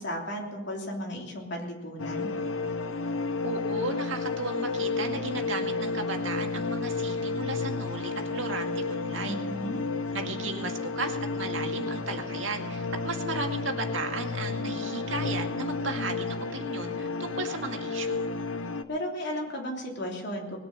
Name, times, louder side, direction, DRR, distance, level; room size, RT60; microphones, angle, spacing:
voice 1, 0.0-2.3 9.2-9.8 18.9-20.6, equal, 60° left, 0 dB, 3.2 m, -34 dB
sound 1, 2.0-18.8, left 4 dB, 90° left, 0.8 m, -32 dB
voice 2, 3.4-9.5 10.1-18.3, right 3 dB, 80° right, 3 dB, 2.1 m, -35 dB
20.0 x 8.9 x 6.7 m, 1.2 s
head